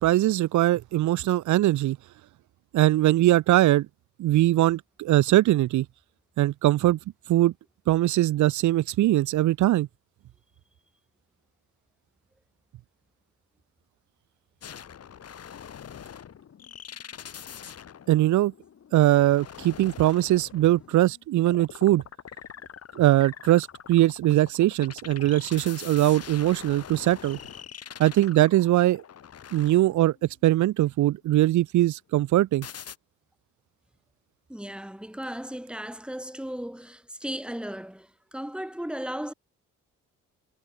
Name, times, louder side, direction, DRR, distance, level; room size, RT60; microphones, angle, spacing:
voice 1, 0.0-2.0 2.7-3.9 4.2-5.9 6.4-7.0 7.3-7.5 7.9-9.9 18.1-18.5 18.9-22.0 23.0-27.4 28.0-29.0 29.5-30.1 30.4-32.7, right 15 dB, 75° right, 0.9 m, -21 dB
sound 1, 14.6-30.3 32.6-33.0, left 8 dB, 55° left, 4.0 m, -44 dB
voice 2, 34.5-39.3, equal, 5° right, 7.5 m, -36 dB
cardioid pair, 90°, 30 cm